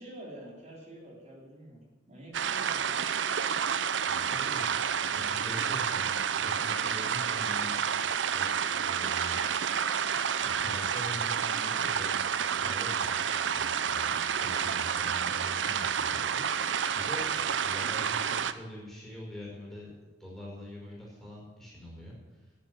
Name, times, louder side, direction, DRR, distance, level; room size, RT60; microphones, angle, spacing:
voice 1, 0.0-1.8 2.1-2.9, right 1 dB, 40° right, -2 dB, 3.5 m, -47 dB
sound 1, 2.3-18.5, right 7 dB, 80° right, 0.6 m, -30 dB
voice 2, 4.1-4.7 5.1-7.7 8.3-8.5 8.8-9.4 10.4-12.3 12.6-19.9 20.2-22.4, equal, ahead, -5 dB, 5.0 m, -44 dB
10.5 x 10.5 x 7.9 m, 1.2 s
head